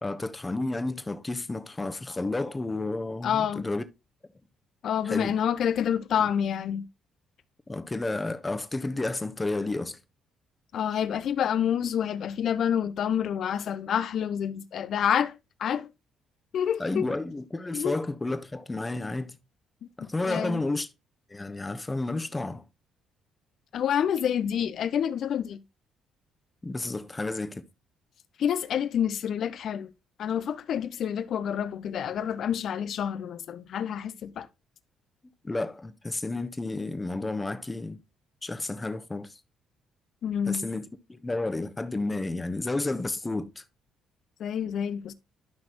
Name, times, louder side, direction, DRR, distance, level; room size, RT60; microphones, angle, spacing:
voice 1, 0.0-3.8 5.0-5.4 6.2-6.3 7.7-10.0 16.8-19.4 20.0-20.9 21.3-22.6 26.6-27.6 35.4-38.0 38.4-39.4 40.5-43.6, left 2 dB, 20° left, 1.1 m, -31 dB
voice 2, 3.2-3.7 4.8-6.8 10.7-15.3 15.6-15.9 16.5-17.1 17.7-17.9 20.0-20.6 23.7-25.6 28.4-29.9 30.2-34.5 40.2-40.7 44.4-45.1, left 9 dB, 55° left, 0.7 m, -28 dB
11.5 x 6.0 x 3.0 m
hypercardioid pair, 45°, 0 cm